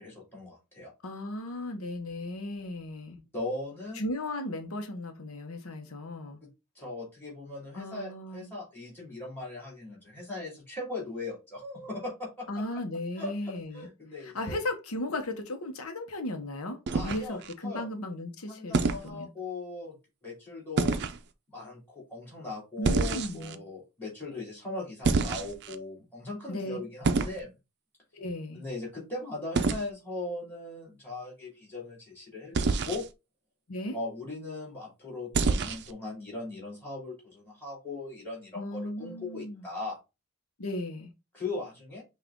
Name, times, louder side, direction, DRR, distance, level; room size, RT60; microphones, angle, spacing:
voice 1, 0.0-0.9 3.3-4.0 6.4-6.5 6.7-12.5 13.2-13.3 13.7-14.6 16.9-17.9 18.5-20.0 20.2-21.0 21.5-27.5 28.5-33.0 33.9-40.0 41.3-42.0, left 2 dB, 10° left, 2.8 m, -39 dB
voice 2, 1.0-3.2 3.9-6.4 7.7-8.5 12.5-13.9 14.2-19.3 22.8-23.6 26.5-26.8 28.1-28.6 33.7-34.0 38.5-39.6 40.6-41.1, left 1 dB, 85° left, 0.8 m, -36 dB
sound 1, 16.9-17.5 18.7-19.1 20.8-21.2 22.8-23.6 25.0-25.8 27.0-27.4 29.6-29.8 32.5-33.1 35.3-35.9, right 4 dB, 50° right, 0.5 m, -27 dB
5.8 x 2.4 x 3.6 m
head